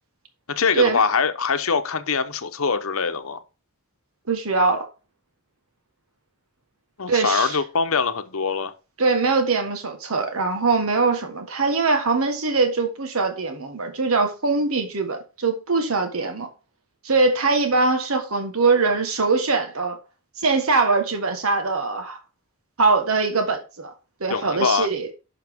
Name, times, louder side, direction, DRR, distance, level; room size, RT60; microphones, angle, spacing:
voice 1, 0.5-3.4 7.0-8.7 24.3-24.9, left 5 dB, 70° left, 0.9 m, -23 dB
voice 2, 4.3-4.9 7.1-7.6 9.0-16.5 17.0-20.0 20.4-22.2 22.8-23.9 24.2-25.1, right 3 dB, 75° right, 1.4 m, -22 dB
11.0 x 5.8 x 3.6 m
head